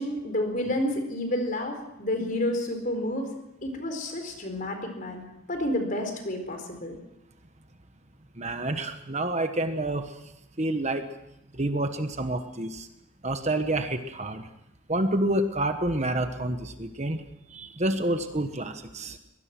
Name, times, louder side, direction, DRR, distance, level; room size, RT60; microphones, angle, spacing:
voice 1, 0.0-3.3 3.6-5.2 5.5-7.0, left 1 dB, 40° left, 5 dB, 4.4 m, -30 dB
voice 2, 8.4-10.1 10.6-11.0 11.5-12.9 13.2-14.5 14.9-17.2 17.5-19.2, right 1 dB, 35° right, 7 dB, 1.2 m, -28 dB
23.5 x 20.0 x 6.1 m, 0.85 s
head